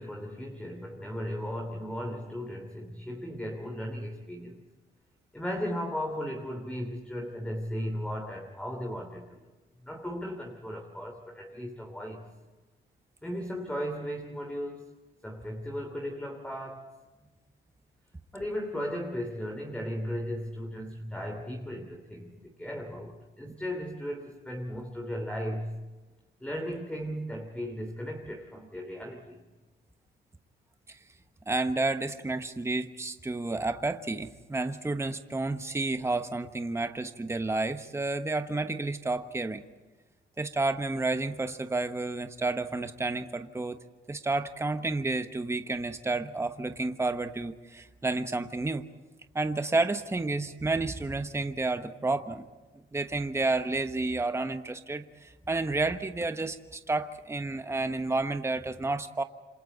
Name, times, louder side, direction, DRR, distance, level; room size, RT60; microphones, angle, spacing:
voice 1, 0.0-4.6 5.3-9.4 9.8-12.3 13.2-14.9 15.2-16.9 18.3-25.8 26.4-29.4, equal, 5° left, 2 dB, 2.9 m, -36 dB
voice 2, 31.5-39.6 40.4-43.8 44.1-48.8 49.3-52.4 52.9-59.2, right 3 dB, 15° right, 8 dB, 1.2 m, -30 dB
28.0 x 26.0 x 4.1 m, 1.2 s
cardioid pair, 90°, 20 cm